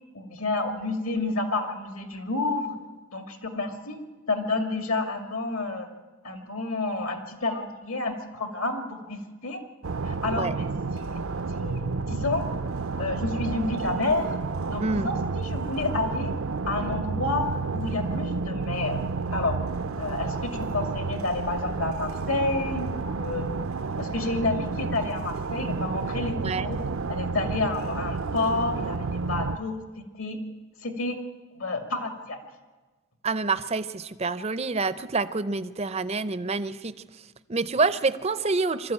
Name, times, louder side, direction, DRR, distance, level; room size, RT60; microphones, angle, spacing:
voice 1, 0.1-2.8 3.1-4.0 4.3-5.9 6.2-9.6 10.0-10.7 10.9-11.1 11.5-12.4 13.0-14.4 14.7-16.3 16.7-19.0 19.3-19.6 20.0-23.5 24.0-26.8 27.1-29.8 30.2-30.4 30.8-31.2 31.5-32.4, left 2 dB, 70° left, 6 dB, 2.4 m, -29 dB
sound 1, 9.8-29.6, right 4 dB, 70° right, 0.6 m, -31 dB
voice 2, 33.2-36.9 37.5-38.9, right 3 dB, 30° right, 13 dB, 0.5 m, -27 dB
23.0 x 13.0 x 8.8 m, 1.3 s
head